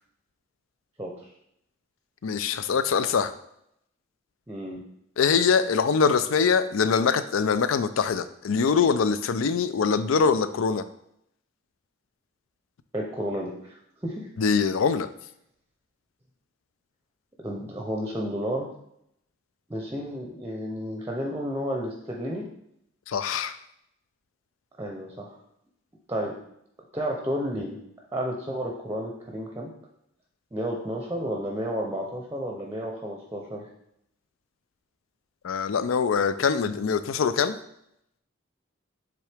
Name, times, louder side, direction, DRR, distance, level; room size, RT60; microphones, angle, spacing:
voice 1, 1.0-1.3 4.5-4.8 12.9-13.7 14.0-14.3 17.4-18.7 19.7-22.4 24.8-25.3 26.1-26.3 26.9-27.8 28.1-29.7 30.5-33.7, equal, 15° right, 0 dB, 0.6 m, -31 dB
voice 2, 2.2-3.3 5.2-10.8 14.4-15.1 23.1-23.5 35.4-37.6, left 5 dB, 80° left, 12 dB, 0.4 m, -23 dB
7.4 x 3.7 x 3.4 m, 0.77 s
head